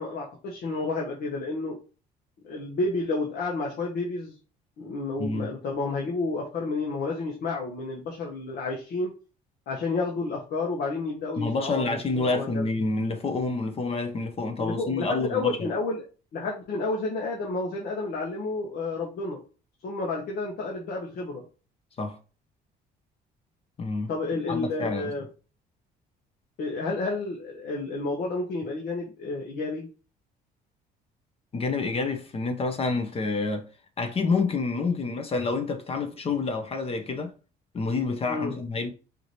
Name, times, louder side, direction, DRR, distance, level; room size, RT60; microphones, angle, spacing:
voice 1, 0.0-1.8 2.4-4.3 4.8-9.1 9.7-12.7 14.6-16.0 16.3-19.4 19.8-21.4 24.1-25.2 26.6-29.9 38.3-38.5, left 3 dB, 65° left, 1.3 m, -30 dB
voice 2, 5.2-5.5 11.4-15.7 22.0-22.2 23.8-24.1 24.5-25.1 31.5-33.7 34.0-37.3 37.7-38.9, left 3 dB, 35° left, 0.9 m, -28 dB
4.8 x 2.8 x 3.1 m
cardioid pair, 110°, 17 cm